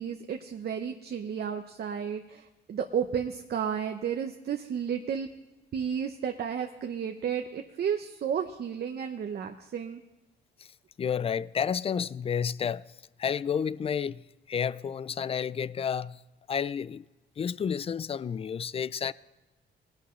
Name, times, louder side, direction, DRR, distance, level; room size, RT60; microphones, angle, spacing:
voice 1, 0.0-5.3 5.7-10.0, right 7 dB, 55° right, 0.8 m, -32 dB
voice 2, 11.0-12.8 13.2-14.2 14.5-16.2 16.5-17.0 17.4-19.1, left 7 dB, 30° left, 0.3 m, -30 dB
19.0 x 11.5 x 3.2 m
cardioid pair, 90°, 20 cm